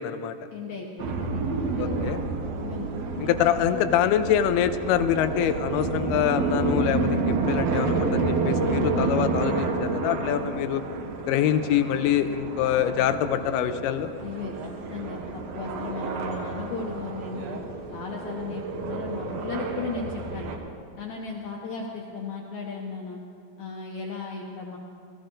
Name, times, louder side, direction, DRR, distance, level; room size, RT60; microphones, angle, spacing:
voice 1, 0.0-0.4 1.8-2.2 3.2-10.8 11.3-14.1, left 10 dB, 90° left, 10 dB, 2.6 m, -25 dB
voice 2, 0.5-1.4 1.7-2.1 2.6-2.9 3.1-3.5 14.2-17.6 17.9-20.5 21.0-23.2 23.6-24.8, left 4 dB, 70° left, -1 dB, 1.8 m, -36 dB
sound 1, 1.0-20.6, right 3 dB, 70° right, 1.7 m, -29 dB
19.0 x 14.5 x 3.8 m, 2.4 s
omnidirectional pair, 4.4 m